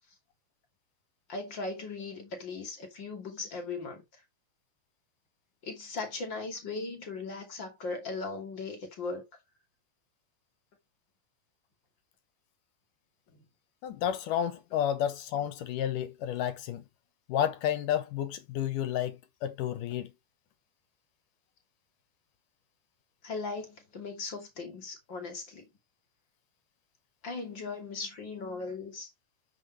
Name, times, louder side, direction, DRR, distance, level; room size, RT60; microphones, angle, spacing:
voice 1, 1.3-4.0 5.6-9.2 23.2-25.7 27.2-29.1, left 3 dB, 35° left, 3.1 m, -38 dB
voice 2, 13.8-16.8 17.3-20.1, left 10 dB, 75° left, 2.5 m, -31 dB
9.6 x 6.3 x 3.1 m
omnidirectional pair, 3.8 m